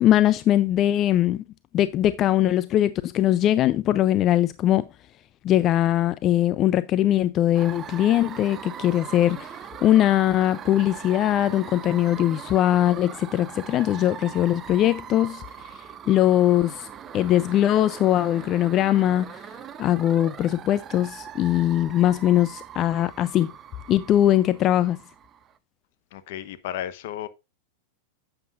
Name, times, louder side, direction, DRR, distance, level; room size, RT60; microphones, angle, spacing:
voice 1, 0.0-1.4 1.7-4.9 5.4-16.9 17.1-23.5 23.9-25.0, left 12 dB, 40° left, 0.4 m, -21 dB
sound 1, 7.5-25.5, right 9 dB, 30° right, 0.7 m, -41 dB
voice 2, 26.1-27.3, left 11 dB, 65° left, 0.9 m, -33 dB
9.3 x 7.9 x 2.4 m
hypercardioid pair, 115°, 0 cm